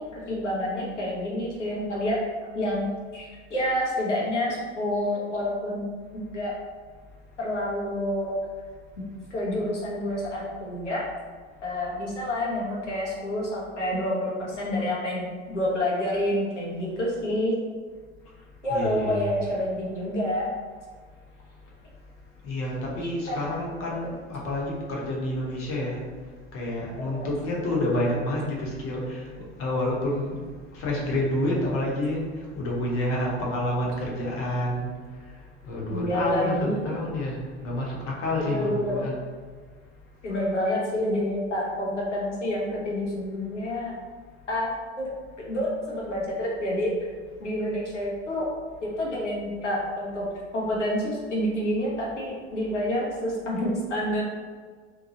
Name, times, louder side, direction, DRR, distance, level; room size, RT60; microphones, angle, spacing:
voice 1, 0.0-2.2 2.5-3.2 3.5-5.9 6.1-6.5 7.4-8.4 9.0-9.1 9.3-11.1 11.6-17.6 18.6-20.5 23.0-23.4 24.0-24.1 27.0-27.3 35.9-37.0 38.4-39.1 40.2-43.9 44.5-44.7 45.0-45.1 45.4-46.9 47.4-48.5 48.8-50.3 50.5-54.2, left 1 dB, 90° left, -4 dB, 0.8 m, -28 dB
voice 2, 18.7-19.5 22.4-26.0 26.5-30.4 30.7-32.2 32.5-34.9 35.6-39.1, left 1 dB, 40° left, -3 dB, 0.9 m, -29 dB
2.8 x 2.2 x 2.8 m, 1.5 s
figure-of-eight pair, 80°, 35 cm